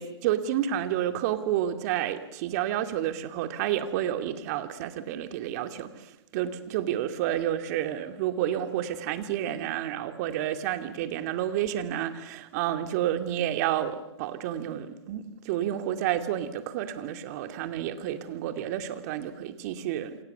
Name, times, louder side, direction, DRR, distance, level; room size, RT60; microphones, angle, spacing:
voice 1, 0.0-5.9 6.3-20.2, right 11 dB, 35° right, 9 dB, 2.4 m, -30 dB
28.5 x 26.5 x 6.9 m, 0.90 s
hypercardioid pair, 150°, 15 cm